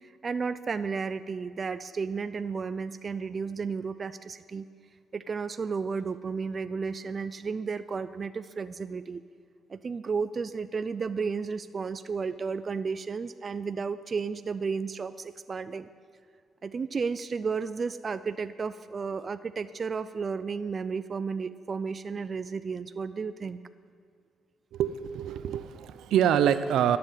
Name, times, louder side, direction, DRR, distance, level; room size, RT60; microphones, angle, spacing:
voice 1, 0.2-4.6 5.1-9.2 9.7-15.9 16.6-23.6, right 5 dB, 40° right, 13 dB, 0.5 m, -33 dB
voice 2, 24.7-27.0, right 9 dB, 80° right, 13 dB, 0.6 m, -25 dB
12.0 x 7.8 x 9.1 m, 2.2 s
cardioid pair, 90°, 0 cm